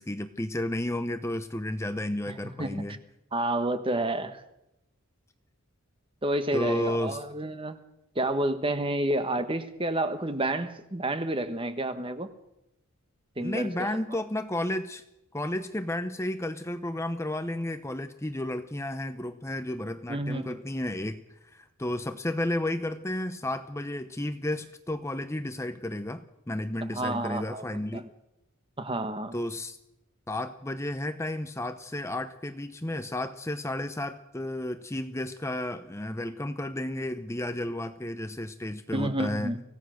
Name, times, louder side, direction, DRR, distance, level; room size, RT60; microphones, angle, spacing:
voice 1, 0.0-3.0 6.5-7.2 13.4-15.0 15.3-21.2 21.5-28.1 29.3-29.8 30.3-39.6, left 1 dB, 15° left, 0.7 m, -32 dB
voice 2, 3.3-4.4 6.2-7.8 8.1-12.3 13.4-14.0 20.1-20.6 26.9-28.0 28.8-29.3 38.9-39.6, right 1 dB, 25° right, 1.4 m, -30 dB
25.0 x 16.5 x 6.5 m
head